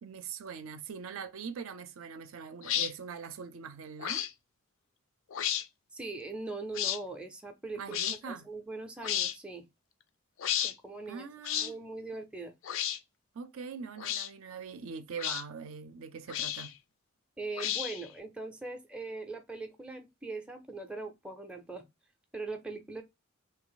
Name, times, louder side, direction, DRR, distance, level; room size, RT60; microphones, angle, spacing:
voice 1, 0.0-4.3 7.8-8.5 11.1-11.8 13.3-16.7, right 6 dB, 70° right, 0.5 m, -42 dB
sound 1, 2.6-2.9 4.0-4.3 5.3-5.6 6.7-7.0 7.9-8.2 9.0-9.4 10.4-10.7 11.4-11.7 12.6-13.0 14.0-14.3 15.2-15.4 16.3-16.7 17.6-18.1, left 11 dB, 65° left, 0.4 m, -32 dB
voice 2, 5.9-9.7 10.6-11.3 11.6-12.5 17.4-21.9 22.3-23.0, right 3 dB, 5° right, 0.4 m, -41 dB
2.7 x 2.4 x 3.8 m
head